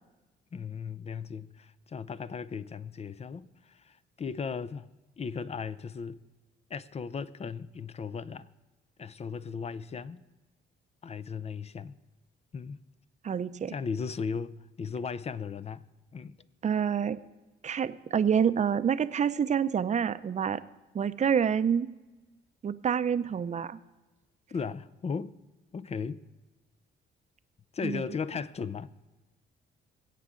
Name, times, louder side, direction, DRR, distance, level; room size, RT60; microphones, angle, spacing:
voice 1, 0.5-4.9 5.2-6.2 6.7-8.5 9.0-10.3 11.0-12.0 12.5-12.8 13.7-15.8 16.1-16.4 24.5-25.3 25.7-26.2 27.7-28.9, left 5 dB, 30° left, 0.5 m, -36 dB
voice 2, 13.2-13.7 16.6-17.2 17.6-20.6 20.9-21.9 22.6-23.8 27.8-28.0, right 7 dB, 35° right, 0.6 m, -27 dB
21.0 x 8.4 x 3.8 m
cardioid pair, 90°, 20 cm